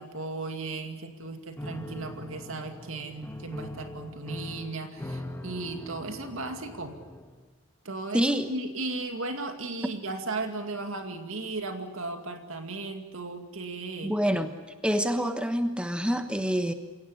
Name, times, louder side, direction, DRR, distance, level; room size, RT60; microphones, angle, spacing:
voice 1, 0.0-7.0 7.8-14.2, right 3 dB, 70° right, 6 dB, 2.3 m, -36 dB
Piano, 1.6-7.5, left 1 dB, 10° left, 1.5 m, -41 dB
voice 2, 8.1-8.5 14.0-14.5 14.8-16.7, equal, 5° right, 7 dB, 1.2 m, -26 dB
28.0 x 18.0 x 9.8 m, 1.3 s
head